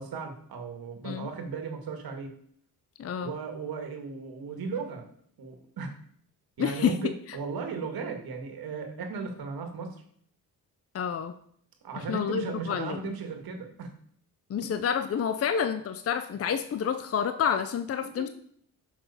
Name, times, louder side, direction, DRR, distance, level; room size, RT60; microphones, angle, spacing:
voice 1, 0.0-2.3 3.2-5.0 5.4-5.9 6.6-10.0 11.8-13.9 14.6-14.7 18.0-18.3, right 5 dB, 70° right, 4 dB, 1.9 m, -36 dB
voice 2, 3.0-3.3 6.6-7.1 10.9-11.3 12.0-13.1 14.5-18.3, left 8 dB, 40° left, 10 dB, 0.6 m, -29 dB
6.7 x 6.0 x 5.5 m, 0.63 s
cardioid pair, 90°, 38 cm